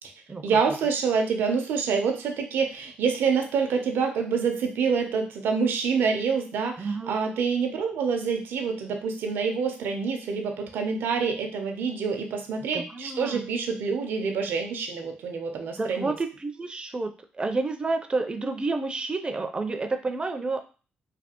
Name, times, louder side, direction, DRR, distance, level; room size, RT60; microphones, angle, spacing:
voice 1, 0.4-16.1, right 5 dB, 85° right, 4 dB, 0.6 m, -27 dB
voice 2, 6.8-7.2 12.7-13.5 15.8-20.6, right 3 dB, 25° right, 6 dB, 0.4 m, -30 dB
3.3 x 2.3 x 2.8 m, 0.36 s
cardioid pair, 85°, 4 cm